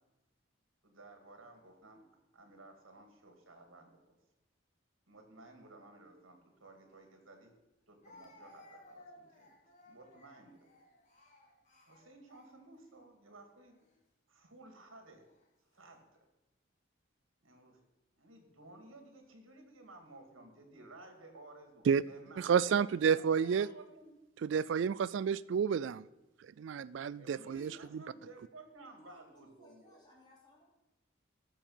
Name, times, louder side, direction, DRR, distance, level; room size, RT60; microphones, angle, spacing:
voice 1, 0.8-2.0 2.3-4.1 5.1-7.5 7.9-9.6 9.9-10.7 11.9-13.7 14.3-15.2 15.7-16.1 17.4-17.8 18.2-22.9 23.1-24.1 27.2-30.0, right 2 dB, 85° right, 2.3 m, -55 dB
Speech, 6.9-7.0 8.0-12.9 13.7-14.0 14.9-15.5, left 1 dB, 35° left, 2.3 m, -60 dB
voice 2, 22.4-23.7 24.4-26.0 26.6-28.0, right 7 dB, 65° right, 0.3 m, -30 dB
voice 3, 29.0-30.6, left 1 dB, 20° left, 3.1 m, -61 dB
13.5 x 7.1 x 5.7 m
head